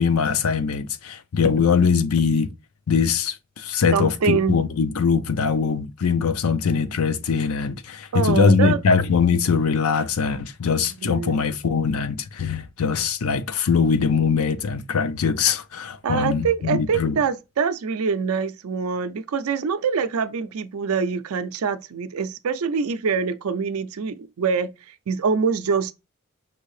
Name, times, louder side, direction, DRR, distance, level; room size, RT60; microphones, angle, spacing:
voice 1, 0.0-2.5 2.9-17.2, left 5 dB, 85° left, 0.5 m, -22 dB
voice 2, 3.9-4.6 8.1-8.8 11.0-11.4 16.0-25.9, right 5 dB, 85° right, 0.5 m, -24 dB
5.4 x 2.7 x 3.1 m
head